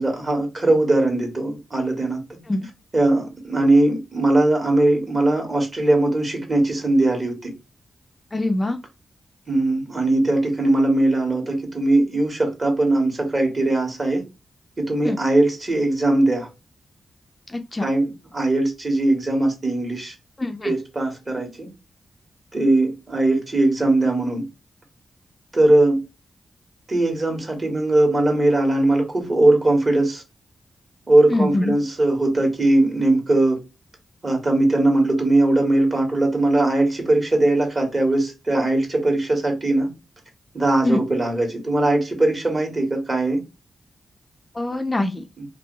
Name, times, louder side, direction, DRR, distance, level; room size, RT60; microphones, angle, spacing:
voice 1, 0.0-2.2 2.9-7.5 9.5-14.2 14.8-16.5 17.8-20.1 20.6-21.7 22.5-24.4 25.5-26.0 26.9-30.2 31.1-33.6 34.2-39.9 40.5-43.4 45.4-45.5, right 2 dB, 35° right, 1.7 m, -20 dB
voice 2, 8.3-8.8 15.0-15.2 17.5-17.9 20.4-20.7 31.3-31.8 40.8-41.0 44.5-45.2, left 2 dB, 25° left, 0.4 m, -23 dB
3.1 x 2.6 x 3.1 m
cardioid pair, 85°, 0 cm